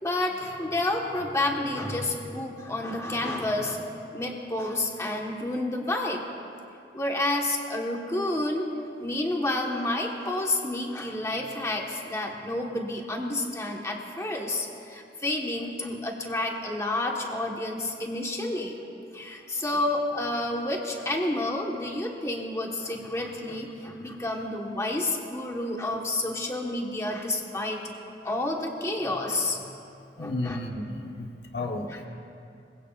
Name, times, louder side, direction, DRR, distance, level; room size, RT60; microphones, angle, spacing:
voice 1, 0.0-6.2 6.9-8.6 9.0-18.7 19.1-27.8 28.2-29.7 30.2-30.6 31.6-32.0, left 1 dB, 15° left, 0 dB, 1.3 m, -30 dB
voice 2, 30.2-32.1, left 2 dB, 65° left, 2 dB, 1.3 m, -33 dB
26.5 x 21.5 x 2.5 m, 2.6 s
head